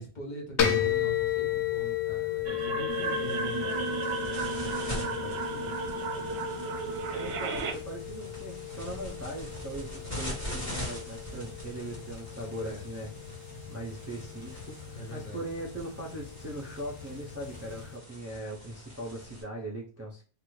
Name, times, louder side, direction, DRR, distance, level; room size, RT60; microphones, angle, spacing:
voice 1, 0.0-5.7 12.5-12.8 15.0-15.5, equal, 45° left, 0 dB, 0.9 m, -43 dB
sound 1, 0.6-17.9, left 10 dB, 85° left, 0.9 m, -35 dB
sound 2, 2.5-7.7, right 5 dB, 70° right, 0.8 m, -34 dB
sound 3, 2.9-19.4, left 1 dB, 15° left, 1.4 m, -43 dB
voice 2, 7.1-20.2, right 1 dB, 20° right, -3 dB, 0.4 m, -40 dB
2.9 x 2.5 x 3.1 m, 0.39 s
omnidirectional pair, 1.1 m